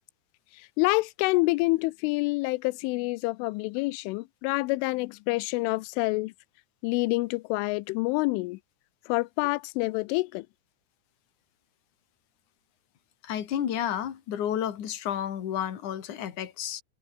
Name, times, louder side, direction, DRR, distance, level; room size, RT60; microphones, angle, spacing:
voice 1, 0.8-6.3 6.8-8.6 9.1-10.5, left 23 dB, 85° left, 3.1 m, -27 dB
voice 2, 13.2-16.8, left 10 dB, 50° left, 3.1 m, -31 dB
omnidirectional pair, 5.7 m